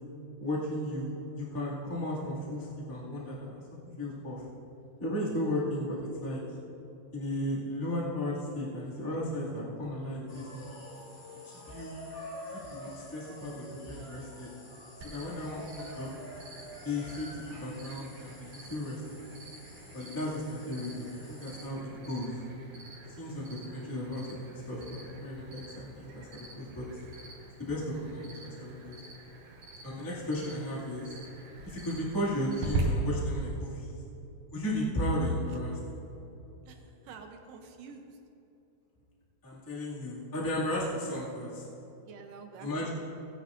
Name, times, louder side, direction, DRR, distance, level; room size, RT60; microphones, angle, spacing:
voice 1, 0.4-3.6 4.0-4.4 5.0-6.4 7.1-10.7 11.5-12.0 12.5-14.5 15.0-16.1 16.8-19.2 19.9-22.3 23.2-26.8 27.6-29.0 29.8-31.1 31.6-34.0 34.5-35.8 39.4-41.6 42.6-42.9, left 1 dB, 10° left, -7 dB, 1.0 m, -35 dB
sound 1, 10.3-21.7, left 1 dB, 40° left, 3.7 m, -48 dB
Cricket, 15.0-32.8, right 5 dB, 55° right, 3.4 m, -45 dB
voice 2, 36.7-38.2 42.1-42.9, right 5 dB, 80° right, 4 dB, 2.1 m, -48 dB
18.5 x 10.0 x 2.5 m, 2.9 s
omnidirectional pair, 4.3 m